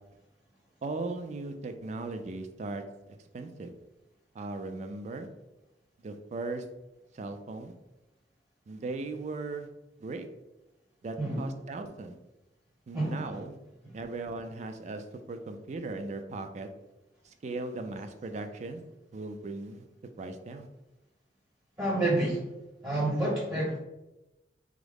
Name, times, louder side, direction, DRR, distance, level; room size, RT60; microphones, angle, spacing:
voice 1, 0.8-2.8 3.3-3.7 4.3-5.3 6.0-6.6 7.1-7.7 8.7-9.7 10.0-10.3 11.0-12.1 12.9-13.6 13.9-16.7 17.2-18.8 19.1-19.8 20.2-20.7, right 3 dB, 40° right, 7 dB, 0.3 m, -38 dB
voice 2, 12.9-13.4 21.8-22.4 22.8-23.8, right 1 dB, 20° right, -5 dB, 0.7 m, -28 dB
3.6 x 2.0 x 3.3 m, 0.98 s
head